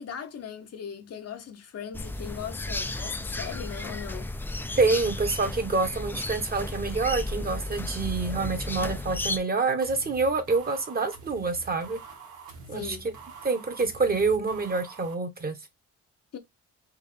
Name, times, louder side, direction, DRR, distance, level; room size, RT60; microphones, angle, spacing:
voice 1, 0.0-4.3 12.7-13.1 16.3-16.4, left 8 dB, 55° left, 0.8 m, -38 dB
sound 1, 1.9-9.4, left 2 dB, 5° left, 0.3 m, -33 dB
voice 2, 4.8-12.0 12.7-13.1 13.4-15.5, right 4 dB, 30° right, 0.9 m, -27 dB
sound 2, 9.8-15.1, right 4 dB, 85° right, 1.4 m, -46 dB
3.5 x 2.7 x 3.3 m
cardioid pair, 90°, 30 cm